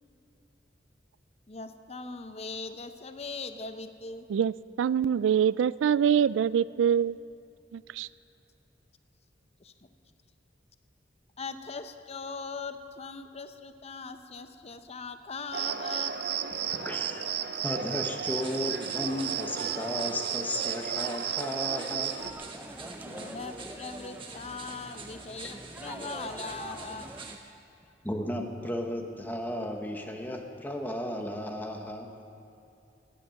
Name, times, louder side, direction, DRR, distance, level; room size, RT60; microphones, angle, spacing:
voice 1, 1.5-4.3 9.6-9.7 11.4-16.1 23.0-27.1, left 4 dB, 35° left, 0.7 m, -40 dB
voice 2, 4.8-7.2 7.7-8.1, right 8 dB, 90° right, 0.3 m, -24 dB
Cricket, 15.5-22.3, right 8 dB, 55° right, 0.7 m, -33 dB
voice 3, 16.6-17.3 17.6-22.2 26.4-26.5 28.0-32.2, left 1 dB, 10° left, 1.1 m, -34 dB
sound 1, 18.2-27.4, right 4 dB, 30° right, 1.4 m, -48 dB
sound 2, 22.2-27.4, right 1 dB, 10° right, 0.5 m, -44 dB
17.5 x 11.0 x 6.4 m
head